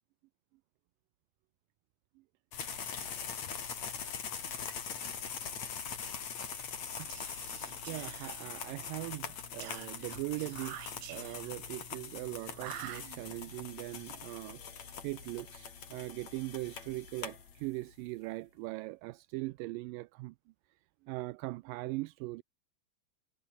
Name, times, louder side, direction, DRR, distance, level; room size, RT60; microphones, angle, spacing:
sound 1, 2.5-17.9, left 7 dB, 50° left, 4.1 m, -42 dB
Whispering, 6.9-8.9 9.6-11.6 12.5-13.6, right 13 dB, 65° right, 1.8 m, -48 dB
voice 1, 7.9-20.4 21.1-22.4, right 21 dB, 80° right, 2.1 m, -40 dB
omnidirectional pair, 4.2 m